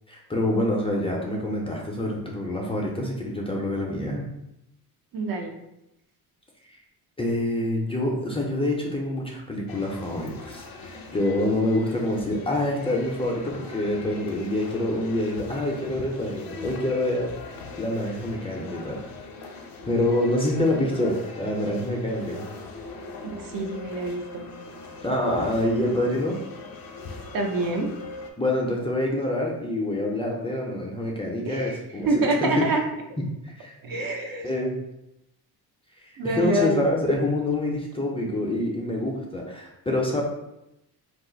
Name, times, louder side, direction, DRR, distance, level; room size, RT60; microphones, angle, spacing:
voice 1, 0.1-4.2 6.7-6.8 7.2-17.3 17.8-19.0 19.9-22.5 25.0-26.4 28.4-32.7 33.4-33.8 34.4-34.8 36.0-40.2, left 1 dB, 15° left, -2 dB, 0.4 m, -26 dB
voice 2, 5.1-5.5 23.2-24.5 27.3-27.9 31.4-31.8 32.0-32.8 33.8-34.5 36.2-36.8, right 2 dB, 60° right, 3 dB, 0.6 m, -26 dB
sound 1, 9.7-28.3, left 3 dB, 60° left, 0.6 m, -41 dB
2.4 x 2.3 x 3.8 m, 0.88 s
cardioid pair, 125°, 39 cm